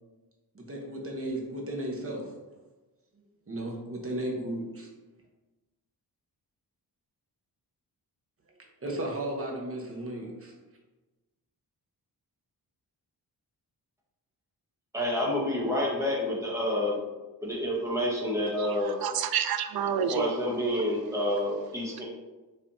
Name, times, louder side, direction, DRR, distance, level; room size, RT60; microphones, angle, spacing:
voice 1, 0.5-2.3 3.5-4.9 8.8-10.5, right 1 dB, 35° right, -1 dB, 1.1 m, -34 dB
voice 2, 14.9-17.0 17.4-19.0 20.1-22.0, left 1 dB, 5° right, -4 dB, 1.3 m, -28 dB
voice 3, 19.0-20.3, right 7 dB, 65° right, 10 dB, 0.5 m, -28 dB
5.5 x 3.4 x 2.8 m, 1.2 s
wide cardioid pair, 100°, 40 cm